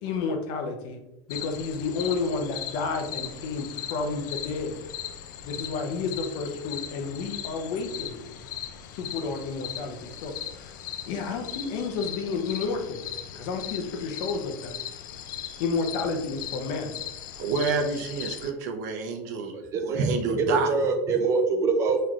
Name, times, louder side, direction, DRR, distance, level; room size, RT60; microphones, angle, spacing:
voice 1, 0.0-1.0 1.3-4.8 5.4-8.2 8.9-10.7 11.1-13.0 13.3-14.8 15.6-16.9, left 4 dB, 55° left, 4 dB, 0.8 m, -31 dB
sound 1, 1.3-18.5, left 10 dB, 80° left, 0.5 m, -38 dB
voice 2, 17.4-20.7, right 4 dB, 70° right, 4 dB, 0.7 m, -29 dB
voice 3, 19.5-20.1 20.5-22.0, right 4 dB, 30° right, 6 dB, 0.5 m, -24 dB
5.7 x 3.2 x 2.4 m, 0.94 s
supercardioid pair, 150°, 10 cm